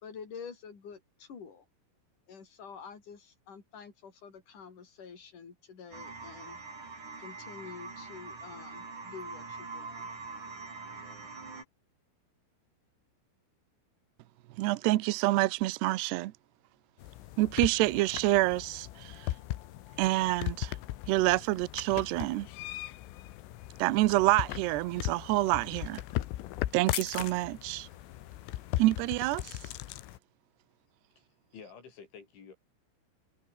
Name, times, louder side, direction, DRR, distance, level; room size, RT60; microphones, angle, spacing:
voice 1, 0.0-1.6 2.3-6.6 7.2-10.1, left 6 dB, 40° left, 5.8 m, -48 dB
sound 1, 5.9-11.6, right 4 dB, 40° right, 7.7 m, -44 dB
voice 2, 14.6-16.3 17.4-19.3 20.0-20.8 21.1-22.5 23.8-26.0 26.7-27.9 28.8-29.6, right 19 dB, 80° right, 2.5 m, -27 dB
sound 2, 17.0-30.2, left 16 dB, 85° left, 3.9 m, -38 dB
voice 3, 31.2-32.5, left 6 dB, 65° left, 8.1 m, -51 dB
omnidirectional pair, 5.8 m